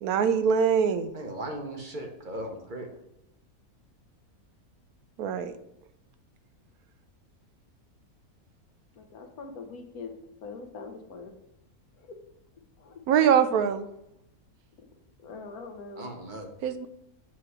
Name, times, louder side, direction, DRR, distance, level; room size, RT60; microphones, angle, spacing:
voice 1, 0.0-1.1 5.2-5.5 13.1-13.9 16.6-16.9, right 7 dB, 85° right, 10 dB, 1.1 m, -23 dB
voice 2, 1.1-2.9 16.0-16.5, right 1 dB, 40° right, 2 dB, 0.9 m, -37 dB
voice 3, 9.0-10.1 10.4-11.3 11.9-12.2 12.8-13.0 14.8-14.9 15.2-16.1, left 4 dB, 90° left, 5 dB, 1.4 m, -42 dB
7.3 x 3.1 x 4.8 m, 0.83 s
omnidirectional pair, 1.5 m